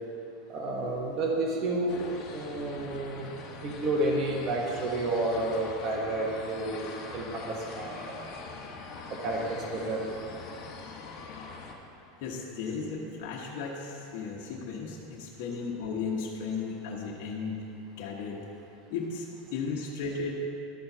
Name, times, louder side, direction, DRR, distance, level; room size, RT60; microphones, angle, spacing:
voice 1, 0.5-3.3 3.6-8.0 9.2-10.0, right 2 dB, 35° right, -2 dB, 1.3 m, -30 dB
sound 1, 1.9-11.7, left 4 dB, 45° left, 1.2 m, -43 dB
voice 2, 12.2-17.6 18.0-18.4 18.9-20.4, left 5 dB, 60° left, -3 dB, 1.2 m, -35 dB
12.5 x 4.4 x 5.5 m, 2.9 s
supercardioid pair, 130°, 0 cm